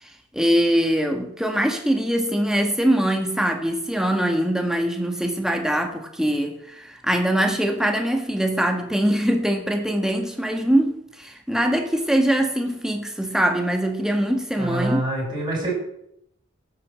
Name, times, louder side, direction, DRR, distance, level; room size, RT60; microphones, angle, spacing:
voice 1, 0.0-15.0, right 1 dB, 5° right, 4 dB, 1.7 m, -22 dB
voice 2, 14.6-15.7, right 1 dB, 20° right, -4 dB, 7.2 m, -26 dB
12.5 x 8.4 x 7.5 m, 0.75 s
head